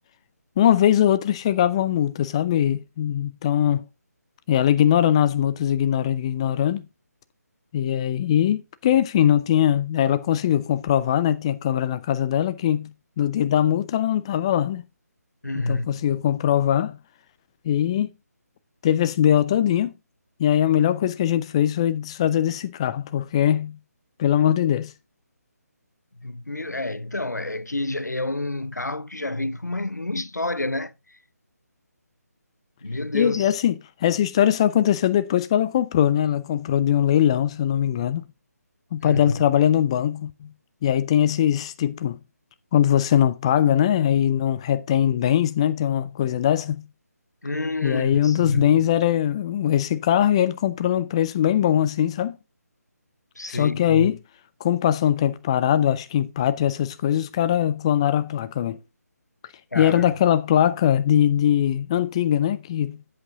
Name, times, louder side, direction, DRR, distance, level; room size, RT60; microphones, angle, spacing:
voice 1, 0.6-3.8 4.5-6.8 7.7-12.9 13.2-14.8 15.5-17.0 17.6-18.1 18.8-19.9 20.4-23.8 24.2-24.9 33.1-33.7 34.0-38.3 38.9-40.3 40.8-42.2 42.7-46.8 47.8-52.4 53.5-54.2 54.6-58.8 59.7-63.0, left 10 dB, 20° left, 0.4 m, -21 dB
voice 2, 15.4-16.1 26.2-30.9 32.8-33.5 39.0-39.4 47.4-48.9 53.4-54.1 59.7-60.0, left 2 dB, 90° left, 0.7 m, -28 dB
8.0 x 7.8 x 3.6 m
figure-of-eight pair, 150°, 9 cm